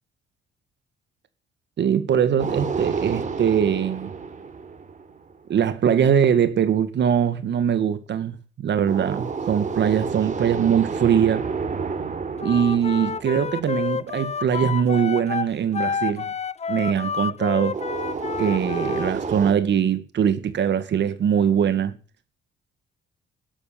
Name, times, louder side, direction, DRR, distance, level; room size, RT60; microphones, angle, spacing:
voice 1, 1.8-4.1 5.5-8.4 8.6-11.4 12.4-16.3 16.7-17.8 18.4-21.9, right 8 dB, 60° right, 2.1 m, -22 dB
sound 1, 2.4-5.5 8.9-14.2 17.7-19.5, right 5 dB, 40° right, 3.7 m, -30 dB
Wind instrument woodwind instrument, 12.4-19.1, left 6 dB, 35° left, 0.8 m, -29 dB
13.0 x 11.5 x 8.8 m
cardioid pair, 90°, 20 cm